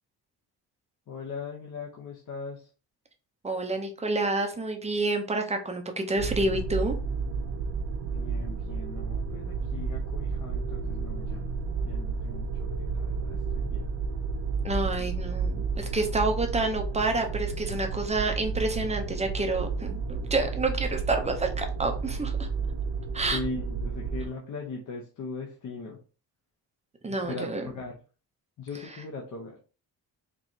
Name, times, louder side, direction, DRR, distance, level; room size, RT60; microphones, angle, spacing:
voice 1, 1.1-2.7 8.1-11.6 11.8-13.9 14.7-15.1 23.3-26.0 27.1-28.0 28.6-29.6, left 4 dB, 50° left, -1 dB, 0.9 m, -39 dB
voice 2, 3.4-7.0 14.6-22.3 23.1-23.4 27.0-27.6, right 2 dB, 15° right, 4 dB, 0.6 m, -28 dB
sound 1, 6.2-24.3, right 5 dB, 70° right, 0.7 m, -31 dB
4.5 x 3.0 x 2.7 m, 0.35 s
wide cardioid pair, 165°, 39 cm